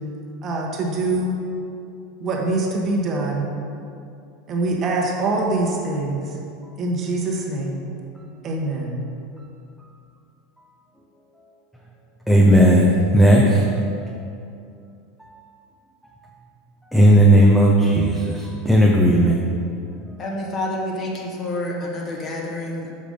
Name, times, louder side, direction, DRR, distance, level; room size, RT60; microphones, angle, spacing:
voice 1, 0.4-1.3 2.2-3.5 4.5-6.3 6.8-7.8 8.4-9.0, right 2 dB, 40° right, -1 dB, 1.3 m, -24 dB
voice 2, 12.3-14.1 15.2-15.3 16.0-16.1 16.9-19.4, equal, 5° left, -2 dB, 0.8 m, -15 dB
voice 3, 20.2-22.9, left 1 dB, 35° left, -2 dB, 1.5 m, -28 dB
6.5 x 4.9 x 5.3 m, 2.5 s
hypercardioid pair, 85°, 0 cm